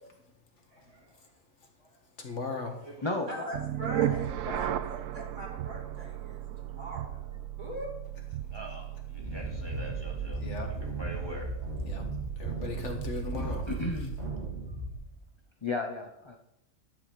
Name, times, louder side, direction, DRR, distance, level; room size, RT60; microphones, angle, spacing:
voice 1, 0.7-1.1 1.8-2.0 2.8-3.5 8.5-10.4 10.8-11.6, equal, 20° right, -1 dB, 2.2 m, -45 dB
voice 2, 2.2-2.8 10.4-10.7 11.8-12.1 12.4-13.6, left 3 dB, 70° left, 3 dB, 1.8 m, -37 dB
voice 3, 3.2-7.2 7.6-7.9, right 1 dB, 40° right, -4 dB, 3.1 m, -41 dB
sound 1, 3.5-14.7, right 11 dB, 85° right, 0.9 m, -36 dB
sound 2, 9.2-14.9, right 2 dB, 60° right, 2.8 m, -37 dB
voice 4, 13.2-14.7 15.6-16.4, left 3 dB, 25° left, 3 dB, 0.8 m, -35 dB
11.5 x 4.9 x 7.5 m, 0.86 s
omnidirectional pair, 1.3 m